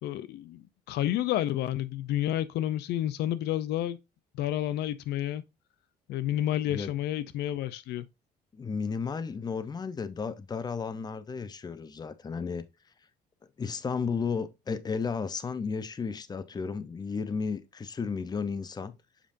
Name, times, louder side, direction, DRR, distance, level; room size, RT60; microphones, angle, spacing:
voice 1, 0.0-4.0 4.3-5.4 6.1-8.1, left 12 dB, 80° left, 0.6 m, -30 dB
voice 2, 8.5-12.6 13.6-19.0, left 5 dB, 25° left, 0.7 m, -33 dB
7.5 x 5.0 x 2.6 m
cardioid pair, 110°, 17 cm